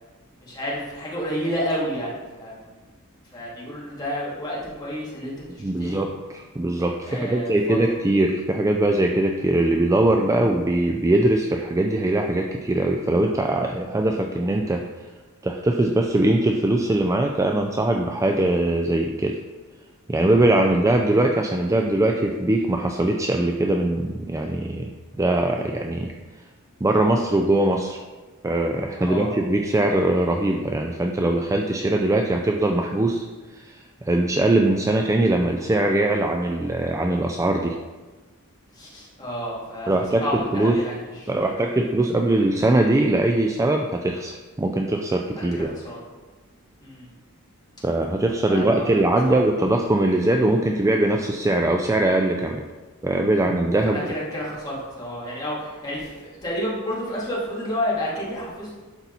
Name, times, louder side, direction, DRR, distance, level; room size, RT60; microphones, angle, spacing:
voice 1, 0.4-2.7 3.3-6.0 7.0-7.8 29.0-29.3 38.7-41.6 45.3-46.0 46.8-47.1 48.5-49.5 53.8-58.7, equal, 20° left, -7 dB, 2.5 m, -30 dB
voice 2, 5.6-14.8 15.4-19.4 20.1-24.9 25.2-26.1 26.8-28.0 28.4-33.3 33.5-37.8 39.9-40.8 41.3-45.7 47.8-52.6 53.0-54.0, right 1 dB, 15° right, 3 dB, 0.4 m, -21 dB
11.5 x 4.2 x 4.1 m, 1.2 s
head